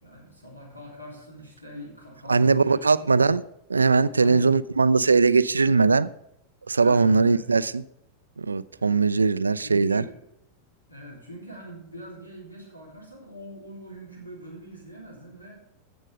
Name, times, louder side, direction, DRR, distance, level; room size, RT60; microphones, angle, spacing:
voice 1, 0.0-3.2 4.1-4.5 6.8-7.6 8.7-9.0 9.5-10.2 10.9-15.6, equal, 85° left, 3.5 m, -43 dB
voice 2, 2.3-3.4 3.7-6.1 6.7-7.8 8.4-10.0, right 4 dB, 75° right, 0.4 m, -20 dB
15.0 x 6.3 x 5.3 m
figure-of-eight pair, 90°, 0 cm